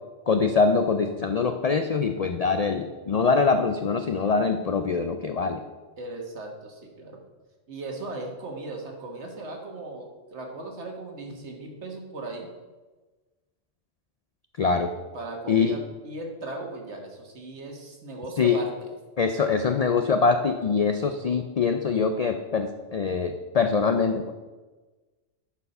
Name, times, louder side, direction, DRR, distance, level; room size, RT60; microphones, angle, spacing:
voice 1, 0.3-5.6 14.6-14.9 15.5-15.8 18.4-18.6 19.2-24.3, left 5 dB, 70° left, 7 dB, 0.3 m, -23 dB
voice 2, 6.0-7.2 7.7-12.5 15.1-18.9, right 2 dB, 65° right, 2 dB, 1.6 m, -37 dB
10.5 x 4.7 x 5.4 m, 1.2 s
omnidirectional pair, 1.3 m